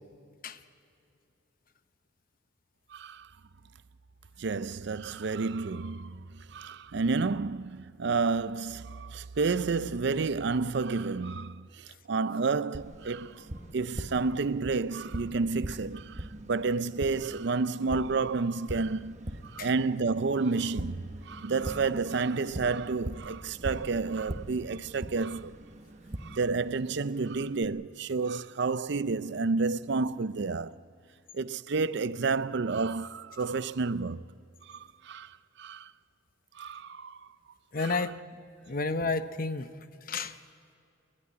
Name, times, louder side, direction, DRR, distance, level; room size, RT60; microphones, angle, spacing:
voice 1, 2.9-3.3 4.4-13.5 13.7-25.6 26.2-30.8 31.3-34.2 34.7-35.9 36.5-37.3 37.8-38.0, right 4 dB, 55° right, 0.5 m, -30 dB
Tap, 12.7-27.7, right 1 dB, 35° right, 1.0 m, -42 dB
voice 2, 37.7-38.2 38.7-39.7 40.1-40.4, left 3 dB, 45° left, 0.8 m, -31 dB
30.0 x 12.0 x 9.8 m
head